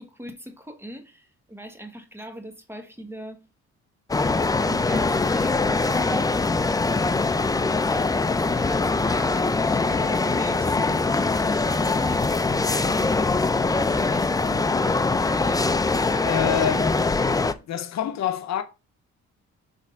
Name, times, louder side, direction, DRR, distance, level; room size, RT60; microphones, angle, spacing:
voice 1, 0.0-3.5 4.6-6.3 7.6-13.4 13.9-14.9 15.2-15.8, right 1 dB, 10° right, 1.2 m, -40 dB
sound 1, 4.1-17.5, left 3 dB, 10° left, 0.4 m, -23 dB
voice 2, 16.1-17.0 17.7-18.6, left 10 dB, 65° left, 0.8 m, -27 dB
6.4 x 3.6 x 5.2 m
cardioid pair, 90°, 30 cm